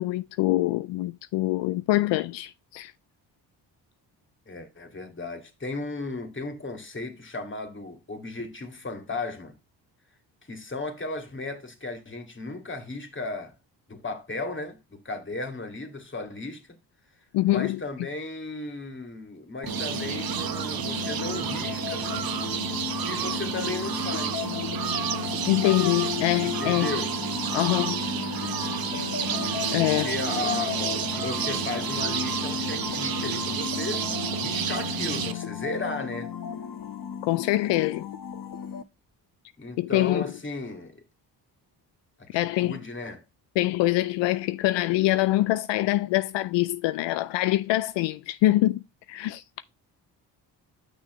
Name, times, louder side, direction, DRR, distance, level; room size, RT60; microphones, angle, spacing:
voice 1, 0.0-2.9 17.3-17.8 25.5-27.0 27.5-28.0 29.7-30.2 37.2-38.1 39.8-40.3 42.3-42.8 43.6-48.8 49.1-49.4, left 17 dB, 80° left, 0.5 m, -24 dB
voice 2, 4.5-9.6 10.5-13.5 13.9-16.6 17.5-22.1 23.0-24.5 26.4-27.1 29.8-36.3 39.6-41.0 42.2-43.2, left 3 dB, 25° left, 2.3 m, -35 dB
sound 1, 19.6-38.8, left 8 dB, 50° left, 1.2 m, -35 dB
sound 2, 19.7-35.3, right 9 dB, 55° right, 1.0 m, -30 dB
8.1 x 6.3 x 3.1 m
supercardioid pair, 60°, 43 cm